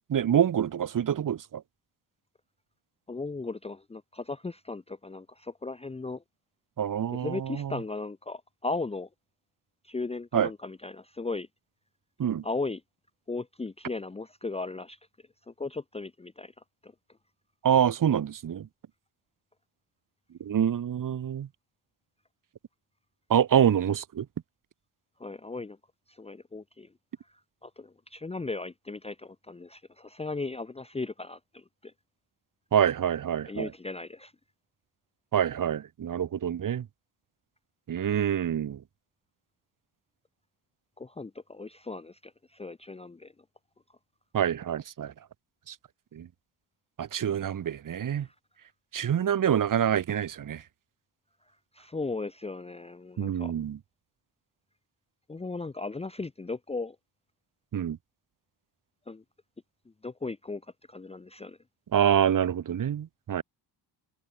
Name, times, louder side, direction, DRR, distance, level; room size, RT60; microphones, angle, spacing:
voice 1, 0.1-1.6 6.8-7.8 10.3-10.5 12.2-12.4 17.6-18.7 20.4-21.5 23.3-24.3 32.7-33.7 35.3-36.9 37.9-38.8 44.3-45.1 45.7-45.8 46.1-46.3 47.0-48.3 48.9-50.6 53.2-53.8 57.7-58.0 61.9-63.4, right 9 dB, 45° right, 1.1 m, -26 dB
voice 2, 3.1-6.2 7.1-9.1 9.8-11.5 12.4-12.8 13.3-15.0 15.5-16.5 16.8-16.9 25.2-25.8 26.1-26.9 27.3-31.9 33.5-34.3 41.0-43.3 48.2-48.3 51.7-53.5 55.3-57.0 59.1-59.2 60.0-60.6 60.9-61.6, left 3 dB, 15° left, 0.8 m, -37 dB
wide cardioid pair, 155°, 45 cm